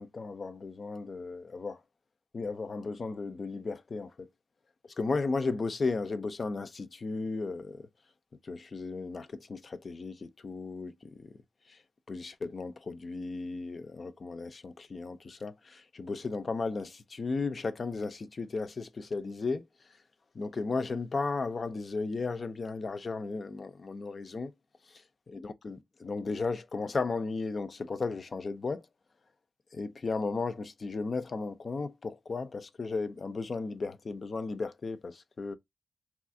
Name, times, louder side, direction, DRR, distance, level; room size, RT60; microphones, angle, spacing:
voice 1, 0.0-1.8 2.3-4.3 5.0-7.9 8.5-11.3 12.1-19.6 20.4-24.5 25.3-28.8 29.7-35.5, left 3 dB, 45° left, 0.4 m, -35 dB
3.3 x 2.4 x 2.5 m
wide cardioid pair, 140°, 0 cm